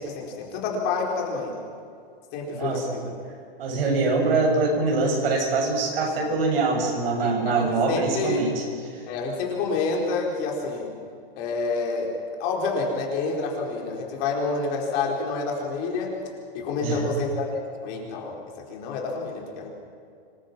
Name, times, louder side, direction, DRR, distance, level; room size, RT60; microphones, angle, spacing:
voice 1, 0.0-1.5 2.3-3.1 7.2-8.4 9.1-10.9 11.4-12.1 12.4-16.1 16.5-18.4 18.7-19.7, left 3 dB, 35° left, -1 dB, 4.4 m, -28 dB
voice 2, 2.5-2.9 3.6-8.6 16.8-17.0, right 3 dB, 75° right, 1 dB, 7.9 m, -23 dB
26.0 x 22.0 x 6.0 m, 2.4 s
supercardioid pair, 170°, 29 cm